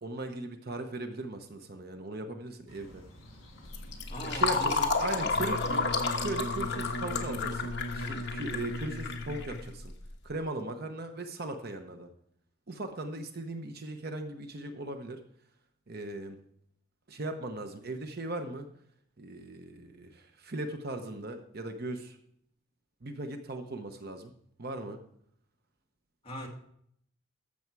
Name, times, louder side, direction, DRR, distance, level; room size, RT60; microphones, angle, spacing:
voice 1, 0.0-3.0 4.2-5.6 6.2-9.9 10.2-12.1 12.7-15.2 15.9-16.4 17.1-18.7 19.2-22.2 23.0-24.3 24.6-25.0, right 2 dB, 45° right, 6 dB, 0.9 m, -38 dB
sound 1, 2.7-7.7, equal, 65° left, 3.6 m, -52 dB
Fill (with liquid), 3.7-10.1, left 4 dB, 50° left, 1.2 m, -31 dB
voice 2, 4.1-5.9 26.2-26.5, equal, 25° left, -1 dB, 2.0 m, -40 dB
Wind instrument woodwind instrument, 5.3-9.8, left 1 dB, 85° left, 0.9 m, -38 dB
14.0 x 6.4 x 4.7 m, 0.69 s
head